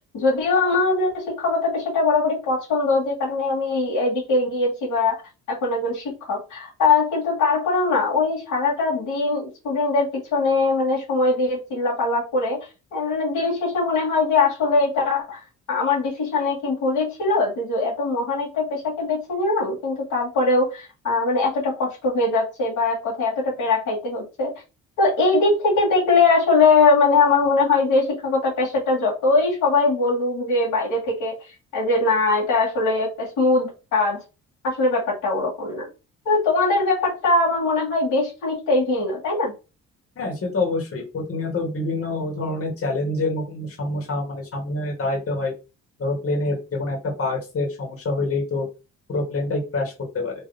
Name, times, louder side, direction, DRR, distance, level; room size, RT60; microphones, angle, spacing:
voice 1, 0.1-5.2 5.5-12.6 12.9-15.4 15.7-24.5 25.0-31.4 31.7-34.2 34.6-35.9 36.2-39.5, left 3 dB, 85° left, -2 dB, 2.4 m, -21 dB
voice 2, 40.2-45.5 46.0-48.6 49.1-50.3, left 2 dB, 50° left, -2 dB, 2.3 m, -26 dB
3.6 x 3.5 x 4.1 m, 0.29 s
cardioid pair, 90°, 30 cm